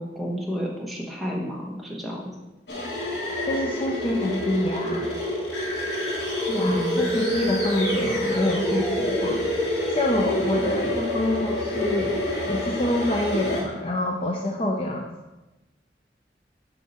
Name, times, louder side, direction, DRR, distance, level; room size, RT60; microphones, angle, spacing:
voice 1, 0.0-2.3 6.6-7.1, equal, ahead, -3 dB, 1.2 m, -30 dB
sound 1, 2.7-13.6, left 1 dB, 85° left, 1.7 m, -27 dB
voice 2, 3.5-5.1 6.3-15.1, left 1 dB, 30° left, 1 dB, 0.5 m, -27 dB
7.3 x 5.6 x 4.3 m, 1.1 s
head